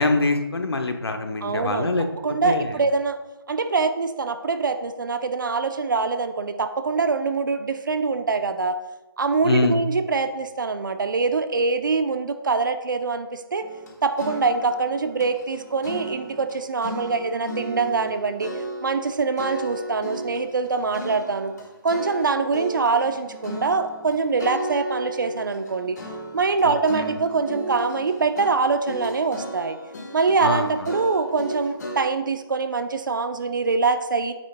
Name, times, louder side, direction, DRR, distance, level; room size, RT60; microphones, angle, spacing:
voice 1, 0.0-2.1 2.4-2.8 9.4-9.8 26.6-27.1 30.4-30.7, left 3 dB, 85° left, 5 dB, 1.1 m, -24 dB
voice 2, 1.4-1.9 2.2-3.2 3.5-8.8 9.2-13.6 14.0-18.5 18.8-21.5 21.8-26.0 26.3-29.8 30.1-34.3, right 4 dB, 55° right, 9 dB, 0.7 m, -24 dB
sound 1, 13.6-16.6 16.8-19.1 19.4-32.0, equal, 45° left, 1.5 m, -35 dB
8.8 x 8.4 x 2.2 m, 1.1 s
figure-of-eight pair, 165°, 13 cm